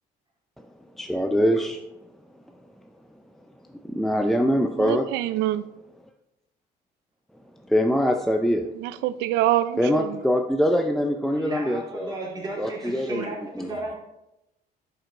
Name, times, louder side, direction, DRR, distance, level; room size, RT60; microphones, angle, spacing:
voice 1, 1.0-1.8 3.8-5.1 7.7-8.7 9.8-12.1 12.6-13.7, equal, ahead, 0.5 m, -23 dB
voice 2, 4.8-5.7 8.8-10.2, right 13 dB, 90° right, 0.5 m, -25 dB
voice 3, 11.3-13.9, right 2 dB, 25° right, 2.8 m, -34 dB
10.5 x 4.8 x 3.9 m
cardioid pair, 110°, 17 cm